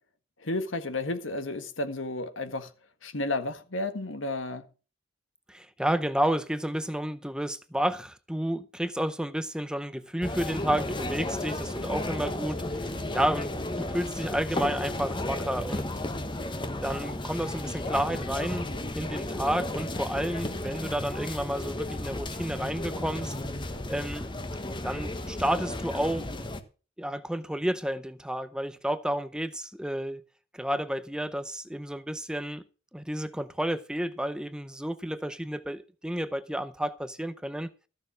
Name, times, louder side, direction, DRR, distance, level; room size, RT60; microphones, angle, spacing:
voice 1, 0.4-2.7 3.0-4.6, left 2 dB, 75° left, 1.7 m, -32 dB
voice 2, 5.5-12.8 13.1-15.9 16.8-18.7 18.9-23.3 23.9-24.3 24.8-26.3 27.0-30.2 30.5-32.6 32.9-37.7, right 1 dB, 5° right, 0.6 m, -31 dB
sound 1, 10.2-26.6, left 1 dB, 25° left, 1.2 m, -33 dB
14.5 x 6.7 x 6.1 m
head